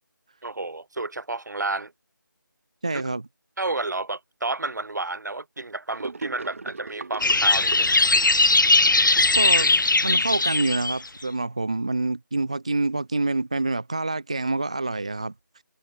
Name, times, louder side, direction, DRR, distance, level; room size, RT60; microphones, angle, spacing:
voice 1, 0.4-1.9 3.6-8.0, right 3 dB, 60° right, 3.1 m, -31 dB
voice 2, 2.8-3.2 9.3-9.7 10.0-15.6, right 2 dB, 20° right, 0.5 m, -27 dB
Gurgling / Sink (filling or washing), 6.0-10.5, right 3 dB, 40° right, 4.1 m, -39 dB
sound 1, 7.2-11.0, left 3 dB, 70° left, 1.3 m, -19 dB
figure-of-eight pair, 175°, 11 cm